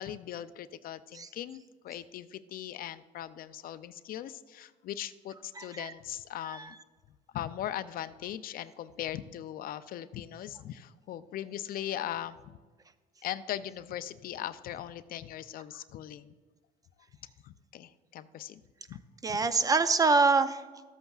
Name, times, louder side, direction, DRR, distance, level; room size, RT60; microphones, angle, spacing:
voice 1, 0.0-6.8 7.3-12.6 13.2-16.4 17.4-18.6 18.9-19.0 19.3-19.4, left 11 dB, 60° left, 13 dB, 0.5 m, -39 dB
voice 2, 5.6-5.9 6.5-6.7 19.2-20.6, right 4 dB, 20° right, 11 dB, 0.5 m, -25 dB
13.5 x 8.0 x 2.4 m, 1.4 s
cardioid pair, 110°, 17 cm